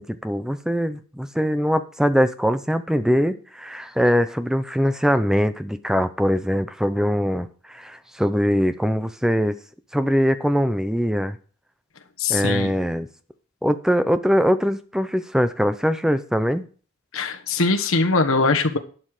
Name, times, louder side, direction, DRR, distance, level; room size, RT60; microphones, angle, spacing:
voice 1, 0.0-9.6 9.9-11.4 12.3-13.1 13.6-16.7, equal, 5° right, 11 dB, 0.6 m, -22 dB
voice 2, 12.2-12.7 17.1-18.8, left 3 dB, 70° left, 5 dB, 1.4 m, -21 dB
11.5 x 7.8 x 5.0 m, 0.41 s
head